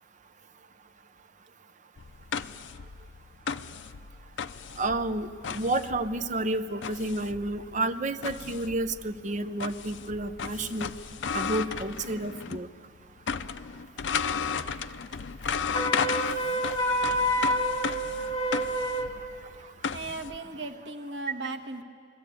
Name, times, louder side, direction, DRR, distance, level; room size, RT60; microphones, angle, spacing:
sound 1, 2.0-12.7 13.0-20.4, left 6 dB, 85° left, 0.5 m, -34 dB
voice 1, 4.8-10.9 11.3-12.7, right 2 dB, 45° right, 10 dB, 0.7 m, -30 dB
Wind instrument woodwind instrument, 15.7-19.1, equal, 30° left, 2.3 m, -28 dB
voice 2, 19.9-21.8, right 2 dB, 85° right, 5 dB, 1.2 m, -37 dB
22.5 x 14.5 x 8.4 m, 2.3 s
head